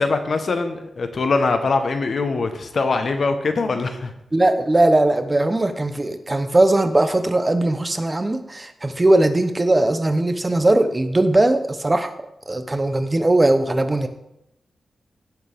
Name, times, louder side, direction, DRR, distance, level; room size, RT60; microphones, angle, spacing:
voice 1, 0.0-4.1, left 3 dB, 60° left, 7 dB, 1.1 m, -22 dB
voice 2, 4.3-12.1 12.5-14.1, right 2 dB, 20° right, 9 dB, 0.7 m, -19 dB
16.5 x 6.5 x 3.5 m, 0.83 s
wide cardioid pair, 110°, 0 cm